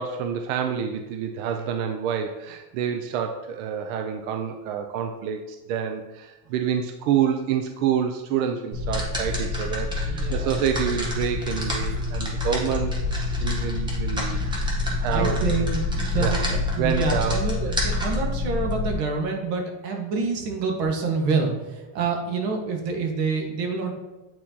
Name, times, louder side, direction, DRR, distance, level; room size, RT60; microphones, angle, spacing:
voice 1, 0.0-12.9 13.4-14.5 15.0-15.4 16.2-16.5 16.8-17.9, right 8 dB, 60° right, 5 dB, 0.6 m, -28 dB
sound 1, 8.7-18.9, left 2 dB, 10° right, 0.7 m, -26 dB
voice 2, 9.9-10.6 14.8-23.9, right 4 dB, 90° right, 2 dB, 1.6 m, -27 dB
8.5 x 4.3 x 2.8 m, 1.1 s
cardioid pair, 175°, 47 cm